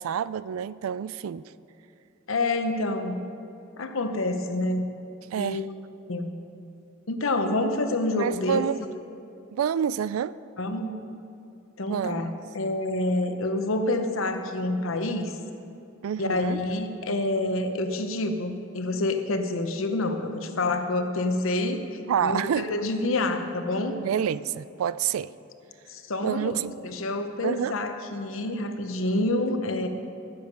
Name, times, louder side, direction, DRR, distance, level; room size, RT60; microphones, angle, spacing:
voice 1, 0.0-1.4 5.3-5.6 8.2-8.8 9.5-10.4 11.8-12.3 16.0-16.6 22.1-22.7 24.0-25.3 26.2-26.7 27.4-27.7, right 8 dB, 85° right, 17 dB, 0.3 m, -28 dB
voice 2, 2.3-3.2 3.8-4.9 5.4-5.6 6.1-6.3 7.1-8.6 10.6-11.0 11.8-15.3 16.2-21.8 22.2-24.0 25.9-29.9, left 2 dB, 75° left, 7 dB, 0.9 m, -27 dB
15.0 x 7.2 x 5.3 m, 2.8 s
head